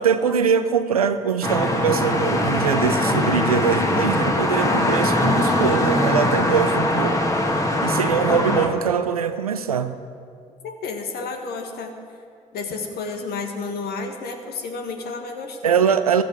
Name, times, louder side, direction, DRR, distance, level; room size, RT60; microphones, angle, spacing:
voice 1, 0.0-7.2 7.8-10.0 15.6-16.2, right 7 dB, 90° right, 11 dB, 0.5 m, -22 dB
sound 1, 1.4-8.7, left 1 dB, 15° left, 2.0 m, -21 dB
voice 2, 10.6-11.9 12.5-15.8, left 4 dB, 60° left, 4 dB, 1.7 m, -31 dB
14.5 x 14.5 x 4.9 m, 2.3 s
figure-of-eight pair, 45°, 18 cm